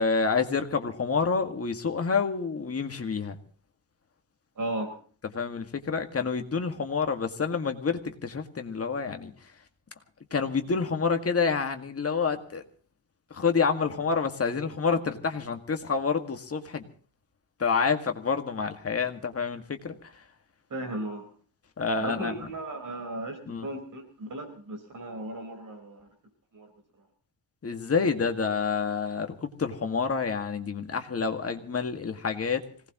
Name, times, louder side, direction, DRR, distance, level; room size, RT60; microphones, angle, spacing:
voice 1, 0.0-3.4 5.3-9.3 10.3-12.6 13.3-16.8 17.6-20.0 21.8-22.3 23.5-23.7 27.6-32.6, left 5 dB, 30° left, 6 dB, 1.9 m, -28 dB
voice 2, 4.6-4.9 20.7-21.3 22.0-26.1 26.5-26.7, right 1 dB, 40° right, 4 dB, 4.6 m, -36 dB
25.5 x 18.5 x 3.0 m, 0.43 s
wide cardioid pair, 165°, 46 cm